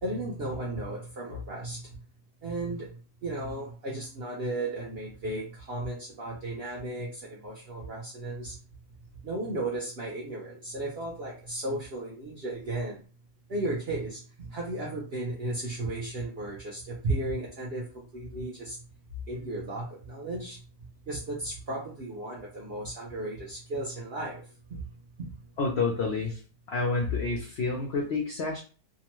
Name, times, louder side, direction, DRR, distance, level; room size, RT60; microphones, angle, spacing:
voice 1, 0.0-2.0 2.4-8.6 9.2-13.0 13.5-18.8 19.3-20.6 21.1-24.8 25.2-25.3, right 2 dB, 60° right, -4 dB, 0.6 m, -35 dB
voice 2, 25.6-26.4 26.7-28.6, left 3 dB, 75° left, 0 dB, 0.6 m, -29 dB
2.8 x 2.2 x 3.0 m, 0.37 s
omnidirectional pair, 1.8 m